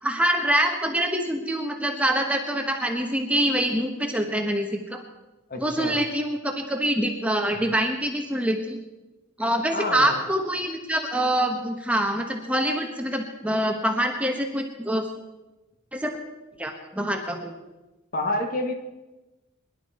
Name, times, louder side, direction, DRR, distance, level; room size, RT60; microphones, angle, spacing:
voice 1, 0.0-5.0 5.6-8.8 9.4-15.0 15.9-16.2 16.6-17.5, right 1 dB, 5° right, 3 dB, 1.2 m, -25 dB
voice 2, 5.5-6.0 9.7-10.2 18.1-18.7, left 1 dB, 40° left, 4 dB, 1.7 m, -28 dB
22.5 x 11.5 x 4.3 m, 1.1 s
head